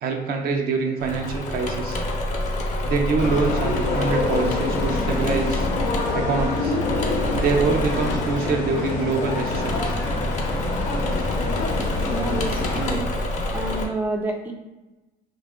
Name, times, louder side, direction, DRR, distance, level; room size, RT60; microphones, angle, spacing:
voice 1, 0.0-2.0 2.9-5.7 6.1-6.8 7.4-10.0, right 4 dB, 60° right, 3 dB, 0.5 m, -25 dB
Engine / Mechanisms, 1.0-13.9, left 1 dB, 45° left, 0.6 m, -28 dB
sound 1, 3.2-13.0, left 3 dB, 85° left, 0.7 m, -27 dB
voice 2, 12.1-13.1 13.5-14.5, right 2 dB, 10° right, 2 dB, 0.3 m, -29 dB
2.5 x 2.3 x 3.6 m, 1.1 s
cardioid pair, 110°, 17 cm